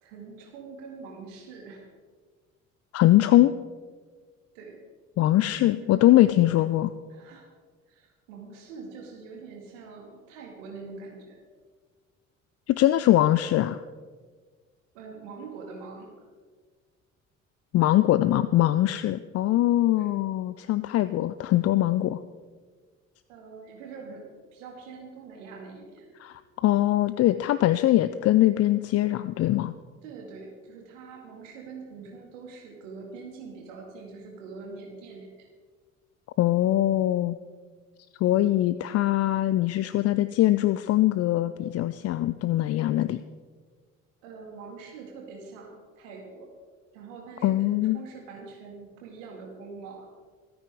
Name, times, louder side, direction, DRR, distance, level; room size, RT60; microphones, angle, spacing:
voice 1, 0.0-1.8 4.5-4.8 5.8-6.1 6.6-6.7 7.1-7.5 7.9-11.4 14.9-16.3 20.0-20.1 23.3-26.1 30.0-35.5 44.2-46.5 46.9-50.1, right 4 dB, 70° right, 1 dB, 2.2 m, -44 dB
voice 2, 2.9-3.5 5.2-6.9 12.7-13.8 17.7-22.2 26.2-29.7 36.4-37.4 38.2-43.2 47.4-48.0, left 14 dB, 40° left, 14 dB, 0.5 m, -22 dB
25.5 x 9.5 x 3.6 m, 1.5 s
figure-of-eight pair, 50°, 39 cm